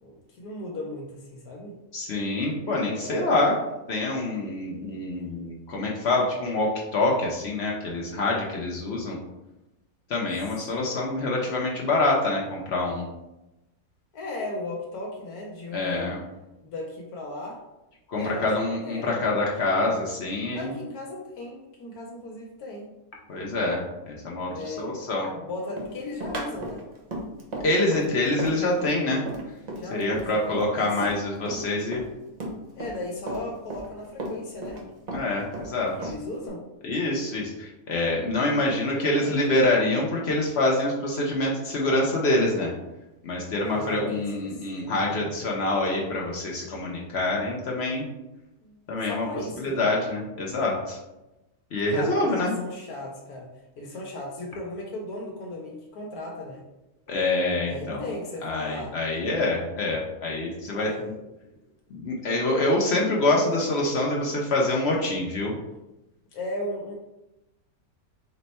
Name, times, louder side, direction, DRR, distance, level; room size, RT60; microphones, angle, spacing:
voice 1, 0.0-1.8 3.0-3.7 14.1-16.1 16.6-17.6 18.2-18.6 18.8-19.5 20.5-22.9 24.5-26.8 29.7-31.1 31.6-32.0 32.8-34.8 36.0-36.6 38.6-39.6 43.6-45.3 48.6-49.9 51.9-53.5 53.8-56.6 57.6-59.0 60.7-61.6 66.3-66.9, left 2 dB, 80° left, 0 dB, 1.2 m, -37 dB
voice 2, 1.9-3.5 3.9-9.2 10.1-13.1 15.7-16.2 18.1-20.7 23.3-25.3 27.6-29.2 29.9-32.0 35.1-36.1 36.8-42.7 43.2-48.1 48.9-49.3 49.6-51.0 51.7-52.5 57.1-58.0 58.4-60.9 61.9-65.5, left 2 dB, 60° left, -2 dB, 0.8 m, -26 dB
Run, 25.8-31.2 31.5-33.0 33.3-34.8 35.1-36.5, right 1 dB, 55° right, 0.4 m, -35 dB
4.3 x 2.2 x 4.0 m, 0.98 s
omnidirectional pair, 1.6 m